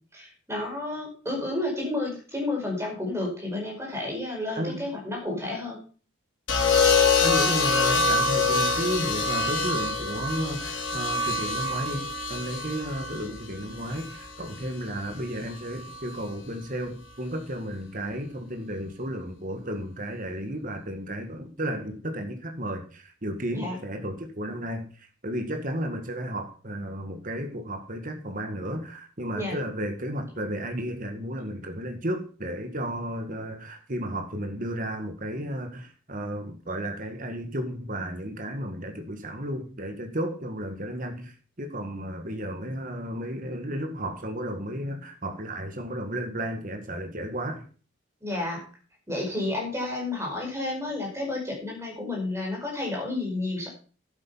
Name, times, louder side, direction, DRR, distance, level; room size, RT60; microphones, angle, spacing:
voice 1, 0.1-5.8 23.5-23.8 29.3-29.6 48.2-48.6 49.1-53.7, left 2 dB, 15° right, -1 dB, 5.3 m, -31 dB
sound 1, 6.5-14.6 15.9-16.2, left 4 dB, 70° left, 3.5 m, -25 dB
voice 2, 7.2-47.6, equal, 40° right, 5 dB, 1.8 m, -33 dB
11.0 x 9.1 x 5.7 m, 0.39 s
head